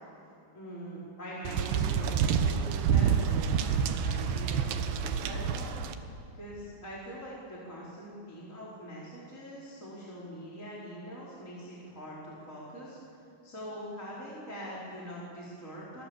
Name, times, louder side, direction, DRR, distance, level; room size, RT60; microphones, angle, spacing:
voice 1, 0.5-5.7 6.3-13.0 13.4-16.0, equal, 20° left, -7 dB, 4.9 m, -43 dB
sound 1, 1.5-5.9, right 7 dB, 85° right, 3.3 m, -28 dB
29.0 x 23.0 x 7.2 m, 2.7 s
omnidirectional pair, 4.6 m